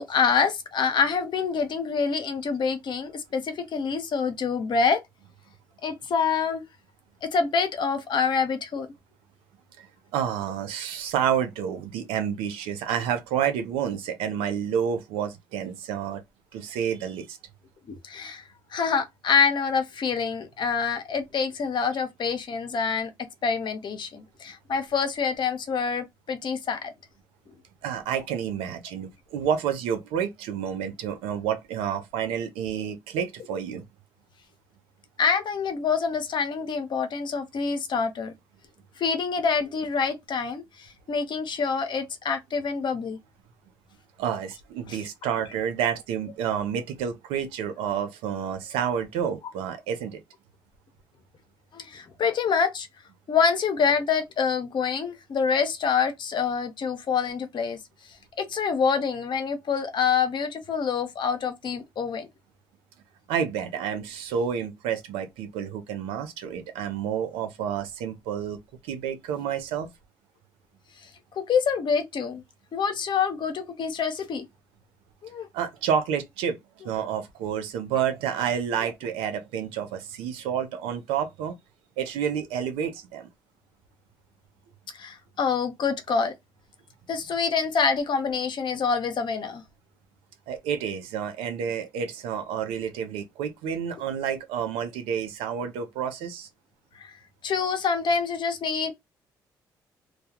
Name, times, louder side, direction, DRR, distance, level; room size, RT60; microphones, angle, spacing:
voice 1, 0.0-5.0 5.8-6.6 7.2-8.9 18.0-18.4 18.7-23.1 23.4-26.9 35.2-38.3 39.0-43.2 44.9-45.0 51.7-52.9 53.3-57.8 58.4-62.3 71.0-72.4 72.7-74.5 75.2-75.5 84.9-86.3 87.1-89.6 96.9-97.1 97.4-98.9, left 5 dB, 55° left, 0.7 m, -26 dB
voice 2, 10.1-16.2 16.5-17.4 27.8-33.8 44.2-50.2 63.3-68.6 68.8-69.9 75.5-76.6 76.8-81.6 82.0-83.3 90.5-96.5, right 8 dB, 85° right, 0.5 m, -29 dB
2.3 x 2.2 x 2.7 m
supercardioid pair, 60°, 9 cm